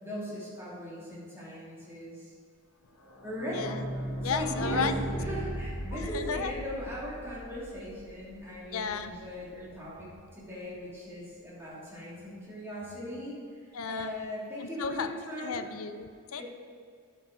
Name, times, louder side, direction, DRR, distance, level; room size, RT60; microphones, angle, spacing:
voice 1, 0.0-2.3 3.2-3.7 4.2-13.3 13.6-15.6 16.4-16.5, equal, 10° right, -8 dB, 2.8 m, -39 dB
sound 1, 3.0-8.6 8.9-9.0 9.1-9.2 9.5-9.6, right 1 dB, 90° left, 1.6 m, -36 dB
voice 2, 3.5-3.8 4.2-4.9 5.9-6.5 8.7-9.1 13.7-14.1 14.6-15.1 15.4-16.4, left 6 dB, 70° left, 9 dB, 0.6 m, -33 dB
9.9 x 7.4 x 5.3 m, 2.2 s
head